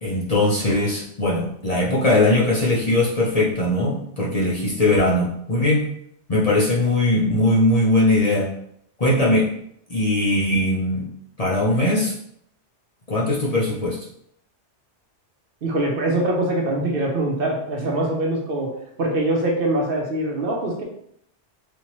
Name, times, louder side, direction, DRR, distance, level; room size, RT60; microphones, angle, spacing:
voice 1, 0.0-5.9 6.3-8.5 9.0-9.5 9.9-11.1 11.4-12.1 13.1-14.0, left 1 dB, 40° left, -5 dB, 0.7 m, -20 dB
voice 2, 15.6-20.8, right 1 dB, 60° right, 0 dB, 0.8 m, -23 dB
3.5 x 2.8 x 3.0 m, 0.70 s
omnidirectional pair, 1.2 m